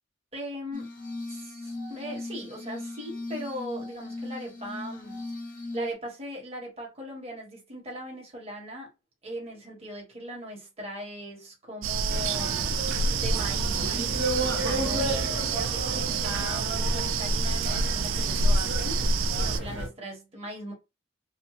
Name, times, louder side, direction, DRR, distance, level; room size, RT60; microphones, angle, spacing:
voice 1, 0.3-0.9 1.3-5.2 5.7-8.9 9.2-12.6 13.2-19.0 19.3-20.7, equal, 30° right, 1.1 m, -39 dB
Glass, 0.7-5.9, left 2 dB, 45° left, 0.7 m, -38 dB
sound 1, 11.8-19.6, right 4 dB, 85° right, 0.3 m, -28 dB
sound 2, 12.1-19.9, right 1 dB, 55° right, 1.0 m, -32 dB
2.9 x 2.1 x 3.0 m
head